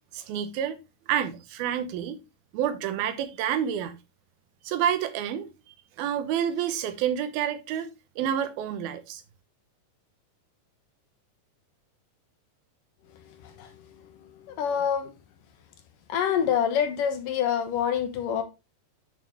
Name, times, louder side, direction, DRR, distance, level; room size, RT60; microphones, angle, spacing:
voice 1, 0.1-0.8 1.1-2.2 2.5-4.0 4.7-5.5 6.0-7.9 8.2-9.2, right 9 dB, 90° right, 2.9 m, -28 dB
voice 2, 13.3-13.7 14.2-15.1 16.1-18.4, left 8 dB, 70° left, 2.7 m, -27 dB
9.0 x 6.6 x 3.0 m
omnidirectional pair, 4.2 m